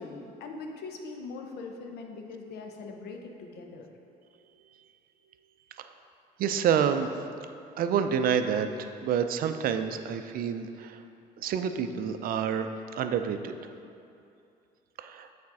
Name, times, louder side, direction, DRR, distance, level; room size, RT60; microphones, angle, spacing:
voice 1, 0.0-3.9, left 3 dB, 75° left, 3 dB, 0.8 m, -41 dB
voice 2, 6.4-7.1 7.8-11.0 11.4-12.7 13.0-13.6 15.0-15.3, right 7 dB, 60° right, 8 dB, 0.5 m, -28 dB
7.2 x 4.2 x 4.8 m, 2.6 s
cardioid pair, 110°, 17 cm